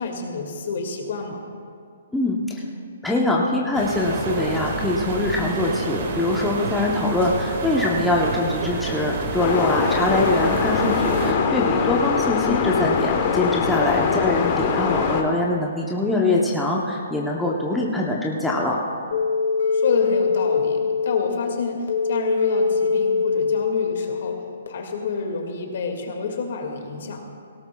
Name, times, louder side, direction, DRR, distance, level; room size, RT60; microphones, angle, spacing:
voice 1, 0.0-1.4 13.8-14.0 19.7-24.4 24.7-27.2, left 4 dB, 55° left, 3 dB, 2.0 m, -28 dB
voice 2, 2.1-2.6 3.0-18.8, left 2 dB, 5° left, -4 dB, 0.8 m, -23 dB
sound 1, 3.7-11.3, right 3 dB, 45° right, 1.9 m, -29 dB
sound 2, 9.4-15.2, left 6 dB, 30° left, 1.1 m, -22 dB
sound 3, 19.1-24.7, left 5 dB, 80° left, 1.8 m, -23 dB
18.0 x 17.5 x 2.3 m, 2.3 s
hypercardioid pair, 165°, 0 cm